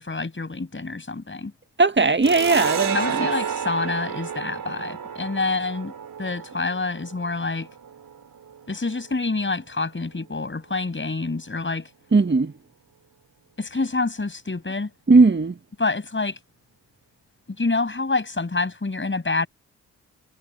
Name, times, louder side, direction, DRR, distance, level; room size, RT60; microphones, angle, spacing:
voice 1, 0.0-1.5 2.9-5.9 6.2-7.7 8.7-11.9 13.6-14.9 15.8-16.4 17.6-19.5, left 3 dB, 30° left, 7.3 m, -27 dB
voice 2, 1.8-3.3 12.1-12.5 15.1-15.6, right 3 dB, 30° right, 1.9 m, -18 dB
sound 1, 2.2-9.4, right 7 dB, 60° right, 3.3 m, -32 dB
hypercardioid pair, 40°, 38 cm